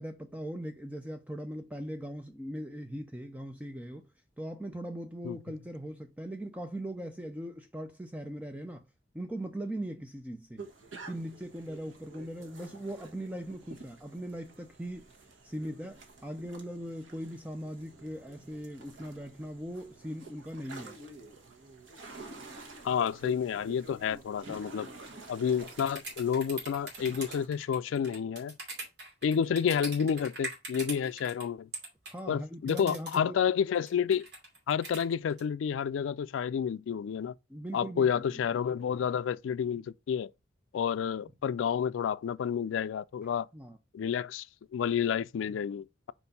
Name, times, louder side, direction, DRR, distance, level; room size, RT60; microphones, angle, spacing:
voice 1, 0.0-4.1 4.4-8.9 9.1-10.7 11.1-15.1 15.4-21.0 32.0-33.4 37.5-38.4 43.5-43.8, right 1 dB, 10° right, 0.4 m, -40 dB
sound 1, 10.6-27.5, right 3 dB, 90° right, 1.5 m, -49 dB
voice 2, 22.8-24.9 25.3-28.6 29.2-31.7 32.3-34.3 34.7-37.3 37.7-40.3 40.7-43.5 43.9-44.5 44.7-46.1, left 7 dB, 85° left, 0.3 m, -30 dB
sound 2, 25.6-31.4 31.7-32.2 32.7-33.2 33.7-35.4, right 3 dB, 60° right, 2.6 m, -41 dB
4.5 x 4.4 x 5.3 m
head